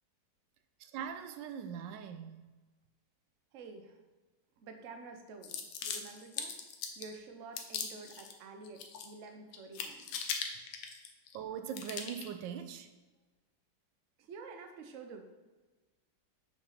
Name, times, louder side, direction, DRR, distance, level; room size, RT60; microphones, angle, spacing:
voice 1, 0.8-2.5 11.3-12.9, right 8 dB, 85° right, 8 dB, 1.3 m, -41 dB
voice 2, 3.5-4.0 4.6-6.6 7.0-10.1 14.2-15.2, right 4 dB, 55° right, 5 dB, 1.0 m, -49 dB
sound 1, 5.4-7.1 7.6-8.3 8.6-9.3 9.5-11.4 11.7-12.3, left 6 dB, 80° left, 1.4 m, -40 dB
6.0 x 4.4 x 5.7 m, 1.2 s
omnidirectional pair, 2.0 m